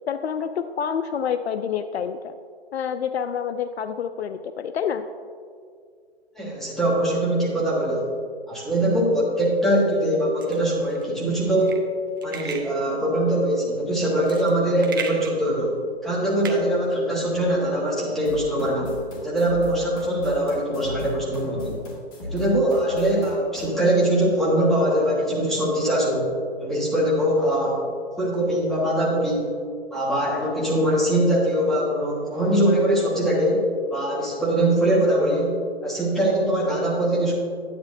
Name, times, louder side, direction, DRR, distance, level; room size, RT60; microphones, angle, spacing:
voice 1, 0.1-2.4 2.7-5.1, left 7 dB, 80° left, 10 dB, 0.5 m, -27 dB
voice 2, 6.4-8.1 8.5-11.8 12.2-15.7 16.0-18.9 19.2-21.7 22.2-26.3 26.6-27.8 28.2-29.5 29.9-37.3, right 1 dB, ahead, -6 dB, 1.4 m, -22 dB
sound 1, 10.4-17.6, right 6 dB, 20° right, 0.4 m, -39 dB
sound 2, 18.3-23.7, left 2 dB, 35° left, 2.1 m, -36 dB
9.8 x 9.8 x 2.7 m, 2.2 s
hypercardioid pair, 145°, 32 cm